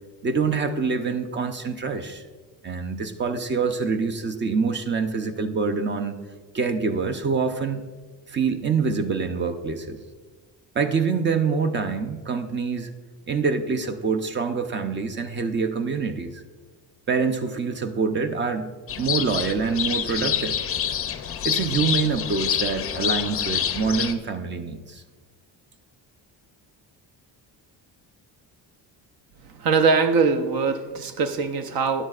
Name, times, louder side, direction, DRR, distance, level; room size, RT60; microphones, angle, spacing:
voice 1, 0.2-2.2 2.6-6.2 6.5-7.8 8.3-10.0 10.7-12.9 13.3-16.4 17.1-18.7 19.0-20.6 21.4-25.0, right 5 dB, 30° right, 9 dB, 0.6 m, -25 dB
sound 1, 18.9-24.1, left 9 dB, 35° left, 0.5 m, -27 dB
voice 2, 29.4-32.0, right 4 dB, 60° right, 9 dB, 0.8 m, -22 dB
14.0 x 10.0 x 2.4 m, 1.4 s
cardioid pair, 160°, 41 cm